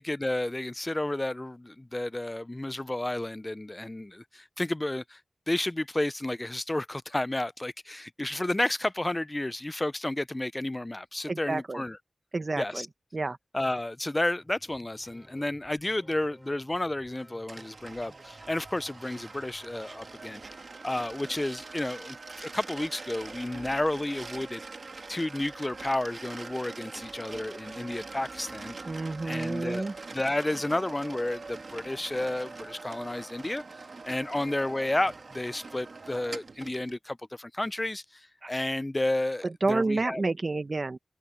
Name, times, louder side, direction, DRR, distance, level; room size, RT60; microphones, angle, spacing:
voice 1, 0.0-5.2 5.5-12.0 12.6-12.9 13.5-20.4 20.8-24.6 25.1-28.7 29.2-29.9 30.1-33.6 34.0-40.2, left 1 dB, 25° left, 0.3 m, -31 dB
voice 2, 11.3-11.8 12.3-12.8 13.1-13.4 28.8-29.9 38.4-38.5 39.4-41.0, right 3 dB, 50° right, 1.2 m, -29 dB
sound 1, 14.3-20.6, equal, 5° right, 6.3 m, -57 dB
sound 2, 17.5-37.0, right 3 dB, 65° right, 1.8 m, -43 dB
wide cardioid pair, 80°, 0 cm